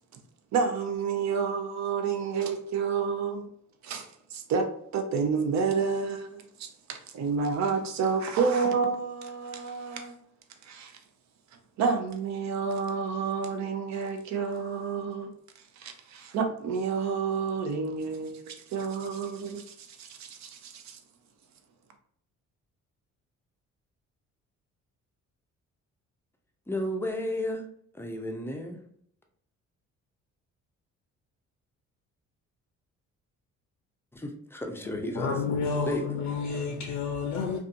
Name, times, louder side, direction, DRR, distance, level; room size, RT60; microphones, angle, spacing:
voice 1, 0.5-3.5 3.8-10.1 10.6-11.0 11.8-15.3 15.8-21.0, right 5 dB, 65° right, 0.6 m, -30 dB
voice 2, 26.7-27.7 27.9-28.8 34.1-35.5 35.9-36.2, left 1 dB, 10° left, 0.4 m, -33 dB
voice 3, 35.2-37.6, left 5 dB, 70° left, 0.5 m, -30 dB
2.5 x 2.3 x 2.5 m
cardioid pair, 90°, 30 cm